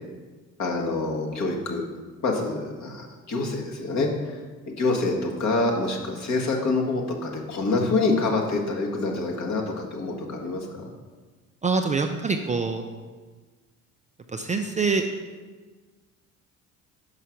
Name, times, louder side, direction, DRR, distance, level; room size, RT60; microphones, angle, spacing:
voice 1, 0.6-1.8 2.2-4.4 4.8-10.7, left 3 dB, 45° left, -1 dB, 1.6 m, -26 dB
voice 2, 11.6-12.9 14.3-15.0, right 4 dB, 20° right, 4 dB, 0.4 m, -25 dB
5.6 x 4.9 x 5.8 m, 1.3 s
supercardioid pair, 75°, 37 cm